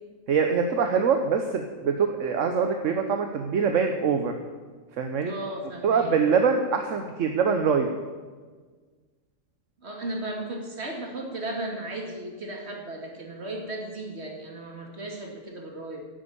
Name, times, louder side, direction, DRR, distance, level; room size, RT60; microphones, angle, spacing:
voice 1, 0.3-4.3 5.0-5.3 5.8-7.9, right 6 dB, 75° right, 5 dB, 1.2 m, -24 dB
voice 2, 5.2-6.1 9.8-16.1, right 1 dB, 55° right, 1 dB, 2.4 m, -35 dB
10.5 x 9.0 x 8.6 m, 1.5 s
omnidirectional pair, 1.3 m